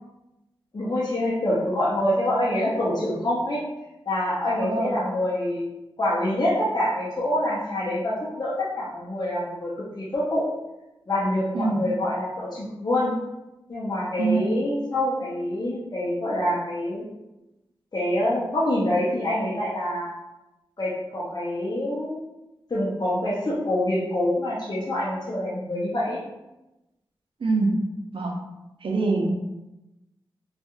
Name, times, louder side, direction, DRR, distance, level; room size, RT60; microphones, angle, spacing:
voice 1, 0.7-3.6 4.1-10.4 11.1-13.1 13.7-17.1 17.9-20.1 20.8-22.2 22.7-26.2, left 1 dB, 50° left, -8 dB, 0.7 m, -26 dB
voice 2, 4.6-4.9 11.5-11.8 14.2-14.4 27.4-27.7 28.1-28.3 28.8-29.3, right 3 dB, 70° right, 1 dB, 0.5 m, -24 dB
2.8 x 2.4 x 2.3 m, 0.97 s
cardioid pair, 45°, 9 cm